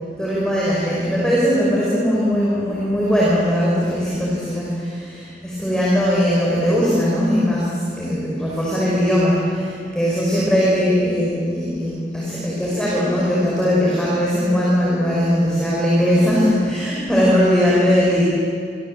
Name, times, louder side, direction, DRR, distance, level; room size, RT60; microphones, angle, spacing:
voice 1, 0.2-18.2, equal, 5° left, -7 dB, 5.8 m, -19 dB
27.0 x 26.5 x 7.8 m, 2.3 s
head